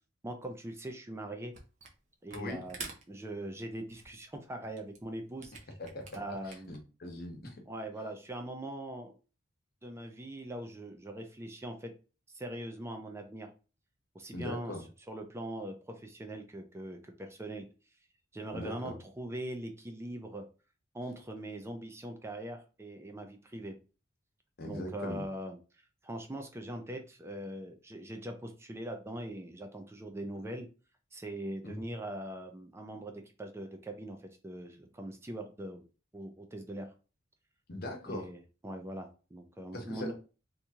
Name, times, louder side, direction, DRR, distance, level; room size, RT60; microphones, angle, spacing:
voice 1, 0.2-1.6 2.2-5.5 6.1-6.7 7.7-9.2 9.8-11.9 12.3-13.5 14.1-14.8 15.1-17.7 18.3-20.5 20.9-23.8 24.6-25.6 26.0-30.7 31.1-33.1 33.4-35.8 36.1-36.9 38.1-40.1, right 1 dB, 15° right, 5 dB, 0.4 m, -41 dB
Camera, 1.5-2.0 2.3-6.8, right 4 dB, 40° right, 0.8 m, -48 dB
voice 2, 6.7-7.5 14.3-14.8 18.5-19.0 24.6-25.2 31.6-31.8 37.7-38.3 39.7-40.1, left 1 dB, 55° left, 2 dB, 1.0 m, -40 dB
2.9 x 2.7 x 3.5 m, 0.34 s
head